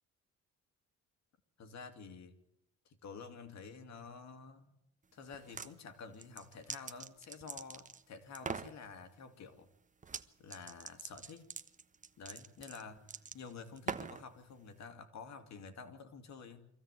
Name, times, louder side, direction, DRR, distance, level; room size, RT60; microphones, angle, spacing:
voice 1, 1.6-2.4 2.9-4.7 5.1-9.7 10.4-11.5 12.2-16.7, left 5 dB, 65° left, 8 dB, 2.4 m, -50 dB
sound 1, 5.3-5.7 6.2-8.0 8.3-8.7 10.0-10.2 10.5-14.2, right 5 dB, 25° right, 1.1 m, -43 dB
25.0 x 15.5 x 8.2 m, 0.83 s
cardioid pair, 90°, 30 cm